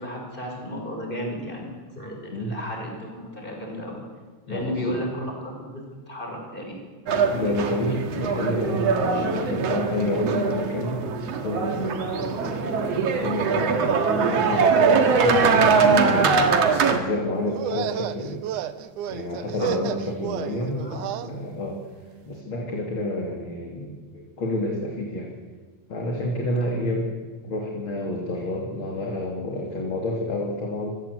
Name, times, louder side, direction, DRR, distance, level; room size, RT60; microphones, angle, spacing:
voice 1, 0.0-3.9 4.5-6.7 7.4-7.5 19.6-19.7 20.6-21.0, equal, 15° left, 1 dB, 6.0 m, -33 dB
voice 2, 4.5-5.0 7.3-11.0 11.4-16.5 16.9-18.4 19.1-21.8 22.2-25.3 25.9-27.1 27.4-30.9, left 1 dB, 40° left, 0 dB, 3.4 m, -29 dB
sound 1, 7.1-17.0, right 5 dB, 55° right, 2.5 m, -22 dB
sound 2, 17.5-21.3, right 11 dB, 75° right, 2.3 m, -32 dB
27.0 x 16.5 x 8.2 m, 1.4 s
omnidirectional pair, 3.7 m